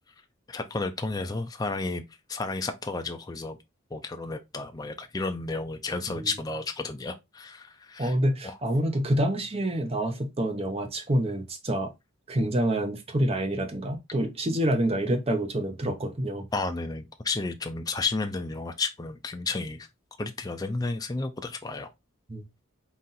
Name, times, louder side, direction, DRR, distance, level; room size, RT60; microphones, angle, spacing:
voice 1, 0.5-2.0 2.3-3.6 3.9-8.2 8.4-8.6 16.5-19.9 20.2-21.9, left 3 dB, 20° left, 0.4 m, -32 dB
voice 2, 8.0-11.9 12.3-16.5 22.3-22.4, right 1 dB, 30° right, 0.7 m, -27 dB
4.1 x 2.5 x 3.9 m
head